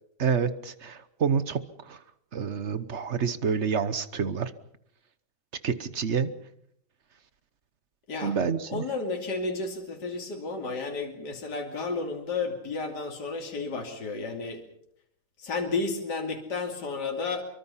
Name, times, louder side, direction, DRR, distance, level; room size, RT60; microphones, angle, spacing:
voice 1, 0.2-2.0 2.3-4.5 5.6-6.3 8.2-8.8, right 6 dB, 45° right, 14 dB, 1.1 m, -28 dB
voice 2, 8.7-14.6 15.4-17.4, left 3 dB, 55° left, 2 dB, 3.3 m, -32 dB
24.5 x 23.5 x 5.7 m, 0.67 s
omnidirectional pair, 2.2 m